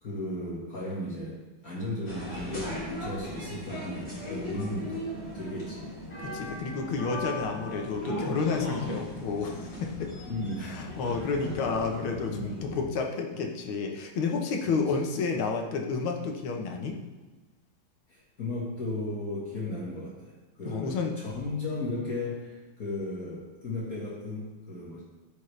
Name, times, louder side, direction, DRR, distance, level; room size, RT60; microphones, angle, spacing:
voice 1, 0.0-6.0 7.6-7.7 8.8-9.0 10.3-11.7 12.3-12.8 13.3-13.5 14.6-14.8 18.1-25.0, left 2 dB, 45° left, -5 dB, 1.9 m, -36 dB
sound 1, 2.0-12.8, left 1 dB, 30° left, 3.2 m, -37 dB
voice 2, 6.2-10.1 10.7-17.0 20.7-21.1, left 4 dB, 85° left, 3 dB, 1.8 m, -30 dB
14.5 x 5.3 x 3.3 m, 1.2 s
omnidirectional pair, 2.2 m